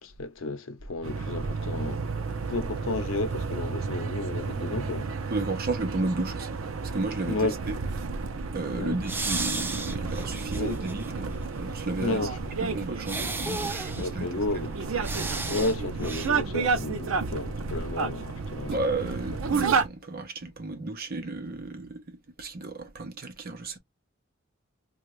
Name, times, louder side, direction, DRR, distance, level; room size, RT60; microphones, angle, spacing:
voice 1, 0.0-2.0 2.5-5.1 7.2-7.6 8.7-9.0 10.5-10.8 12.0-12.3 14.0-14.8 15.5-18.8, left 2 dB, 85° left, 0.7 m, -32 dB
sound 1, 1.0-19.9, right 4 dB, 85° right, 0.6 m, -31 dB
voice 2, 5.3-7.5 8.5-12.3 12.6-14.3 18.7-23.8, right 2 dB, 50° right, 0.8 m, -33 dB
sound 2, 9.1-11.1 11.5-11.6 13.0-14.1 15.0-15.8 16.0-16.3, right 3 dB, 10° right, 0.3 m, -33 dB
2.6 x 2.3 x 3.1 m
head